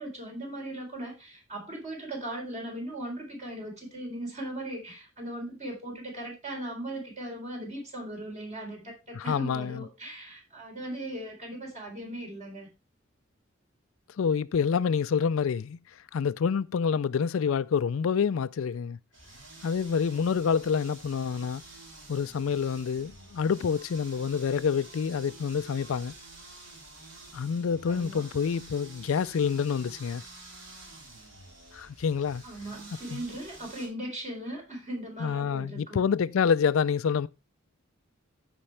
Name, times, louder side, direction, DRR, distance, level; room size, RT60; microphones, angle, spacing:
voice 1, 0.0-12.7 27.9-28.2 32.4-36.1, right 1 dB, 35° right, 4.0 m, -38 dB
voice 2, 9.1-9.8 14.2-15.8 16.1-19.0 19.6-21.6 22.1-26.1 27.3-30.2 31.7-32.4 33.1-33.2 35.2-37.3, left 6 dB, 70° left, 0.4 m, -27 dB
sound 1, 19.1-33.9, right 2 dB, 65° right, 4.0 m, -49 dB
14.5 x 5.3 x 3.3 m
head